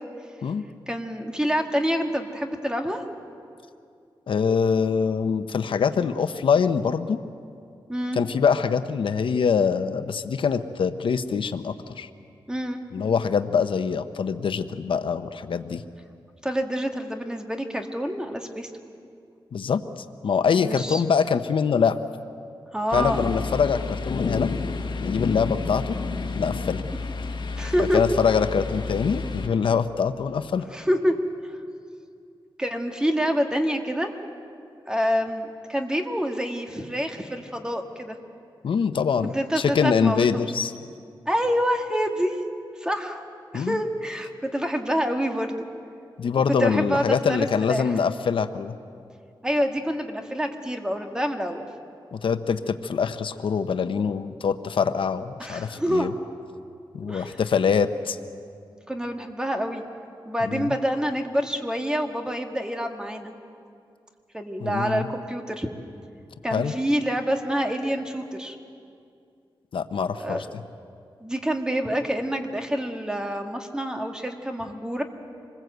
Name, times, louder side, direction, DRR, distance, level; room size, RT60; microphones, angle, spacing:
voice 1, 0.9-3.0 7.9-8.2 12.5-12.8 16.4-18.7 20.6-21.0 22.7-23.3 27.5-28.0 30.7-31.1 31.4-31.5 32.6-34.1 34.9-38.2 39.2-40.4 41.2-42.4 42.8-43.2 43.5-45.7 46.6-47.9 49.4-51.7 55.4-56.1 57.1-57.4 58.9-59.8 60.2-63.3 64.3-65.7 66.4-68.5 70.2-70.4 71.2-75.0, equal, 10° right, 4 dB, 1.8 m, -27 dB
voice 2, 4.3-7.2 8.1-12.1 12.9-15.8 19.5-19.8 20.2-22.0 22.9-24.5 25.0-26.0 26.4-26.9 27.9-30.6 38.6-40.7 43.5-43.8 46.2-48.8 52.1-56.1 56.9-58.2 60.4-60.7 64.6-65.1 66.5-66.7 69.7-70.6, left 6 dB, 85° left, 10 dB, 0.8 m, -24 dB
sound 1, 22.9-29.5, left 4 dB, 65° left, 1.9 m, -30 dB
26.0 x 21.0 x 8.0 m, 2.4 s
wide cardioid pair, 125°, 9 cm